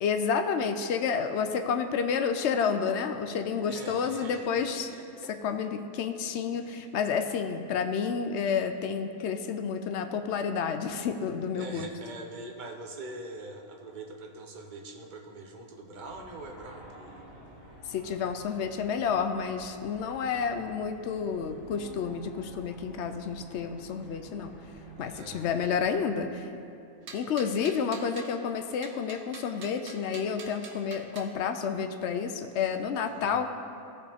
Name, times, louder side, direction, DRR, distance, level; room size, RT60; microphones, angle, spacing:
voice 1, 0.0-4.9 5.4-11.9 17.9-24.6 25.0-26.5 27.1-33.4, left 6 dB, 65° left, 7 dB, 0.7 m, -30 dB
voice 2, 3.7-5.3 6.5-6.9 11.5-17.2 25.0-25.5 33.1-33.4, right 2 dB, 40° right, 2 dB, 0.7 m, -44 dB
sound 1, 16.0-25.9, equal, 30° left, 2.0 m, -50 dB
sound 2, 27.1-28.3 28.8-31.3, right 5 dB, 65° right, 1.1 m, -45 dB
14.5 x 5.2 x 3.5 m, 2.6 s
omnidirectional pair, 1.5 m